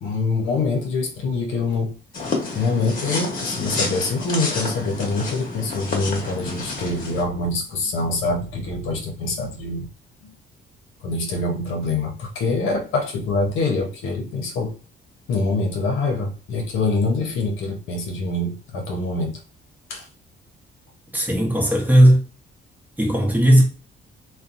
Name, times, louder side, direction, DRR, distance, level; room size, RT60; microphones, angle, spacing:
voice 1, 0.0-1.9 2.5-9.9 10.2-10.3 11.0-14.7 15.3-19.4 19.9-20.1, left 3 dB, 80° left, 0.7 m, -25 dB
sound 1, 2.1-7.2, left 3 dB, 45° left, 1.0 m, -29 dB
voice 2, 21.1-22.2 23.0-23.6, right 1 dB, 10° right, 0.9 m, -15 dB
2.7 x 2.2 x 2.5 m
cardioid pair, 90°, 20 cm